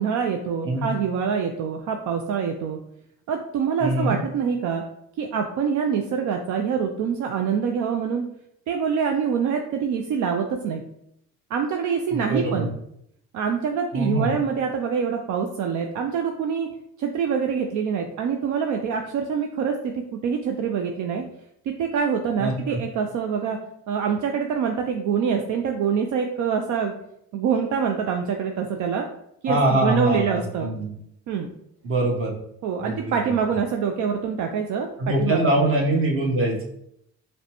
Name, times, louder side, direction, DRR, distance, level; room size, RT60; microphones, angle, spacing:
voice 1, 0.0-2.8 3.3-4.8 5.2-8.2 8.7-10.8 11.5-12.7 13.3-16.7 17.0-21.2 21.8-23.6 23.9-26.9 27.3-29.1 29.4-30.7 31.3-31.5 32.6-35.7, right 6 dB, 75° right, 3 dB, 0.5 m, -25 dB
voice 2, 3.8-4.2 12.1-12.7 13.9-14.3 22.4-22.8 29.5-30.9 31.8-32.3 32.8-33.0 33.2-33.3 35.0-36.7, right 1 dB, 45° right, -1 dB, 1.1 m, -23 dB
5.0 x 2.2 x 2.9 m, 0.74 s
cardioid pair, 90°, 30 cm